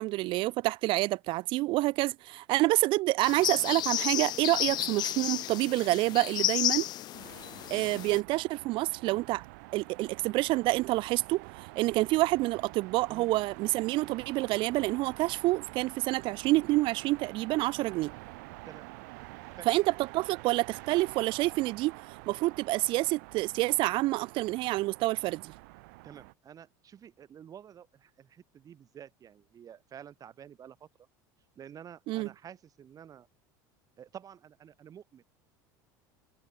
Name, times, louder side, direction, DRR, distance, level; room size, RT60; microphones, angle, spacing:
voice 1, 0.0-6.9 7.7-9.4 9.7-18.1 19.7-19.8 20.1-22.0 22.3-25.5 32.1-32.3, right 19 dB, 60° right, 1.0 m, -28 dB
sound 1, 3.2-8.2, left 14 dB, 45° left, 0.4 m, -32 dB
sound 2, 7.1-26.3, right 28 dB, 75° right, 1.4 m, -48 dB
voice 2, 26.0-30.9 31.6-33.3 34.0-35.2, right 9 dB, 35° right, 2.9 m, -50 dB
supercardioid pair, 95°, 10 cm